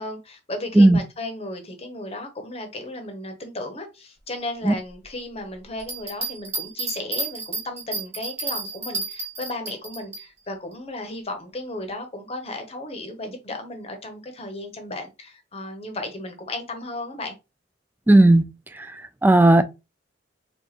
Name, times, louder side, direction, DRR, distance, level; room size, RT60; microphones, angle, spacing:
voice 1, 0.0-17.3, left 2 dB, 35° left, 0.8 m, -35 dB
Bell, 5.8-10.2 10.7-10.8, right 3 dB, 40° right, 1.8 m, -31 dB
voice 2, 18.1-19.6, right 2 dB, 10° right, 0.3 m, -16 dB
4.8 x 2.4 x 2.9 m
head